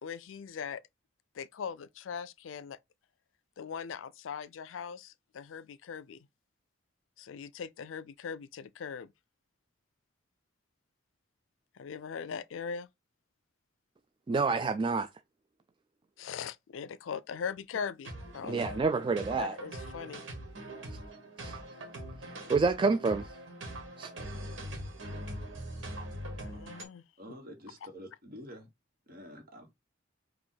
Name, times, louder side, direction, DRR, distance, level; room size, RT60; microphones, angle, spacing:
voice 1, 0.0-0.8 1.4-2.8 3.6-6.3 7.2-9.1 11.8-12.9 16.2-18.8 19.4-20.2 26.4-27.0, left 6 dB, 85° left, 0.4 m, -40 dB
voice 2, 14.3-15.1 18.4-19.6 21.4-21.6 22.5-23.3 24.0-24.1, right 4 dB, 25° right, 0.3 m, -28 dB
sound 1, 18.0-26.8, right 1 dB, 85° right, 1.5 m, -42 dB
voice 3, 27.2-28.7 29.1-29.7, equal, 50° right, 1.6 m, -48 dB
4.9 x 2.5 x 3.9 m
head